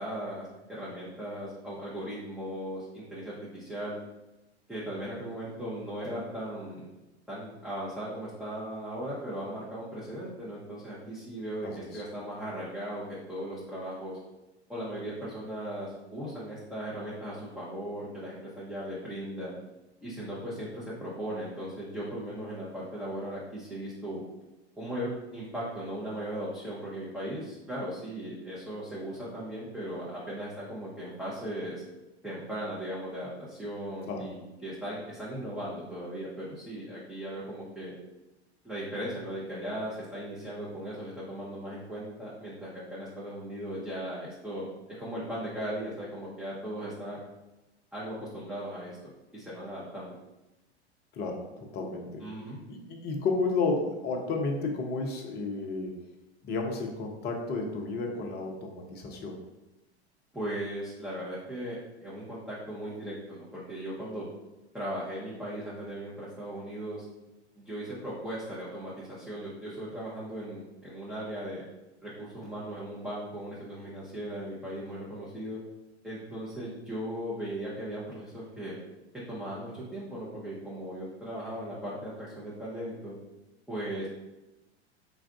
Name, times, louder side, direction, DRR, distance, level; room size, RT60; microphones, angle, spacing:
voice 1, 0.0-4.0 4.7-6.9 7.3-14.2 14.7-19.6 20.0-24.2 24.7-31.8 32.2-37.9 38.6-47.2 47.9-49.0 49.3-50.1 52.2-52.6 60.3-64.3 64.7-67.0 67.6-71.6 72.0-75.6 76.0-78.8 79.1-83.2 83.7-84.1, right 1 dB, ahead, -9 dB, 0.9 m, -38 dB
voice 2, 11.6-12.0 34.1-34.3 51.1-52.3 52.7-56.0 56.4-59.4, left 3 dB, 30° left, 2 dB, 0.8 m, -32 dB
3.9 x 2.4 x 3.4 m, 1.0 s
figure-of-eight pair, 90°, 33 cm